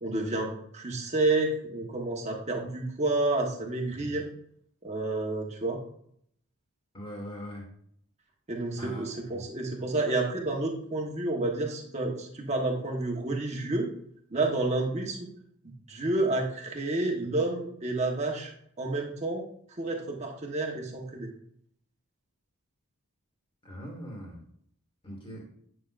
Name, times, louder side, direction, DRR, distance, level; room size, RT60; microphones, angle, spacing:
voice 1, 0.0-4.3 4.8-5.8 8.5-13.9 14.3-15.2 15.9-18.5 18.8-19.4 19.8-21.3, right 2 dB, 30° right, 0 dB, 1.2 m, -30 dB
voice 2, 3.9-4.2 6.9-7.6 8.8-9.0 9.3-9.4 23.7-24.4 25.0-25.4, equal, 25° left, 0 dB, 2.0 m, -41 dB
9.3 x 6.0 x 2.5 m, 0.67 s
head